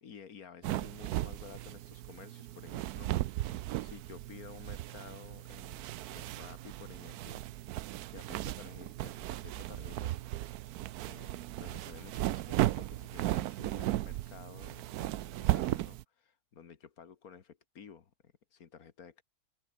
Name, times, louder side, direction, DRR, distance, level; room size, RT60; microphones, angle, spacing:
voice 1, 0.0-7.4 8.1-10.2 11.1-19.2, left 7 dB, 75° left, 2.0 m, -52 dB
sound 1, 0.6-16.0, right 15 dB, 80° right, 1.1 m, -36 dB
omnidirectional pair, 1.6 m